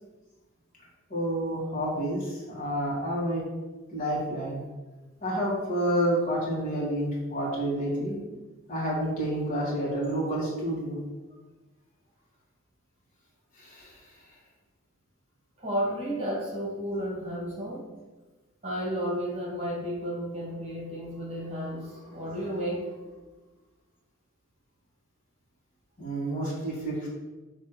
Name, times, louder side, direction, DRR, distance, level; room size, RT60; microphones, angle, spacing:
voice 1, 1.1-3.4 3.9-4.6 5.2-8.2 8.7-11.0 13.6-14.0 26.0-27.1, right 1 dB, 40° left, -5 dB, 2.0 m, -29 dB
voice 2, 15.6-17.8 18.6-23.2, equal, 30° right, -4 dB, 1.8 m, -32 dB
6.4 x 3.2 x 5.8 m, 1.2 s
head